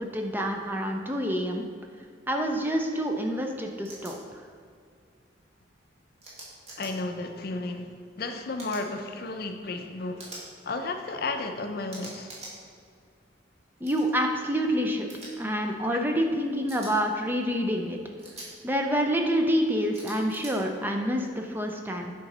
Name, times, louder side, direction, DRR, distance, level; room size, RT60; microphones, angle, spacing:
voice 1, 0.0-1.7 2.3-4.2 13.8-15.1 15.4-18.0 18.6-22.1, equal, 10° right, 3 dB, 0.4 m, -27 dB
sound 1, 3.9-4.1 6.2-6.9 8.6-8.8 10.2-10.4 11.9-12.5 13.8-14.0 15.1-15.3 16.7-16.9 18.2-18.5 19.9-20.5, right 2 dB, 35° right, 1.8 m, -43 dB
voice 2, 6.8-7.9 8.2-10.3 10.6-12.3 15.9-16.1, left 3 dB, 55° left, 6 dB, 0.5 m, -33 dB
7.8 x 3.8 x 5.3 m, 2.2 s
head